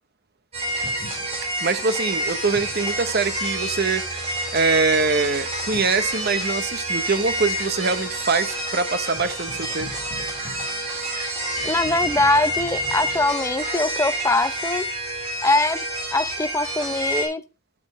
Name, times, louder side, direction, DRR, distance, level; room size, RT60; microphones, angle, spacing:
sound 1, 0.5-17.3, right 1 dB, 30° right, 4.0 m, -28 dB
voice 1, 1.6-4.3 4.5-9.9, right 4 dB, 45° right, 0.8 m, -23 dB
voice 2, 11.6-14.9 15.4-15.8 16.1-17.4, left 2 dB, 15° left, 0.5 m, -22 dB
10.5 x 7.5 x 3.1 m
head